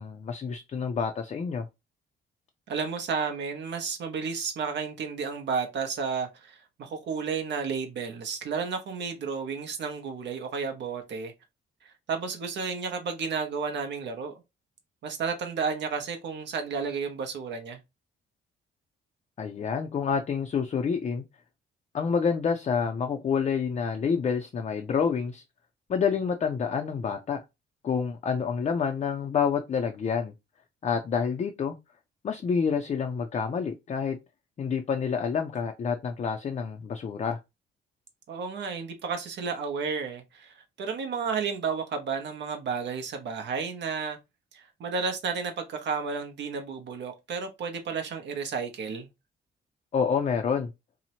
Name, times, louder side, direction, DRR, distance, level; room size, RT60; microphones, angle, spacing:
voice 1, 0.0-1.7 19.4-21.2 21.9-25.4 25.9-27.4 27.8-30.3 30.8-31.8 32.2-34.2 34.6-37.4 49.9-50.7, left 6 dB, 35° left, 0.4 m, -28 dB
voice 2, 2.7-11.3 11.8-14.3 15.0-17.8 38.3-44.2 44.5-49.1, right 5 dB, 65° right, 0.7 m, -32 dB
2.8 x 2.0 x 2.7 m
cardioid pair, 90°, 20 cm